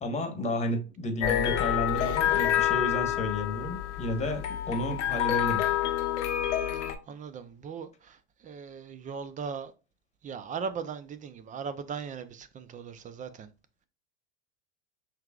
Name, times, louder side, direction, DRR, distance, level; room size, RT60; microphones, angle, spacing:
voice 1, 0.0-5.7, left 1 dB, 20° left, 1.2 m, -32 dB
sound 1, 1.2-6.9, left 12 dB, 80° left, 0.9 m, -28 dB
voice 2, 7.1-9.7 10.2-13.5, right 6 dB, 20° right, 0.5 m, -38 dB
5.6 x 3.4 x 2.4 m
hypercardioid pair, 100°, 36 cm